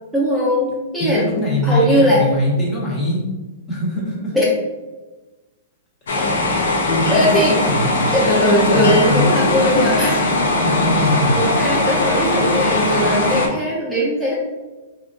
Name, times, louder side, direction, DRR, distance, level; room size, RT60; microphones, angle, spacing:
voice 1, 0.1-2.2 4.3-4.5 7.1-7.6 8.1-10.3 11.2-14.3, equal, 5° left, -9 dB, 0.7 m, -19 dB
voice 2, 1.0-3.3 3.7-4.3 6.1-6.3 6.8-7.9 8.5-10.1 10.6-11.3, left 1 dB, 30° left, -4 dB, 1.2 m, -22 dB
sound 1, 6.1-13.5, left 2 dB, 80° left, 0.6 m, -19 dB
3.4 x 2.5 x 2.5 m, 1.2 s
hypercardioid pair, 125°, 0 cm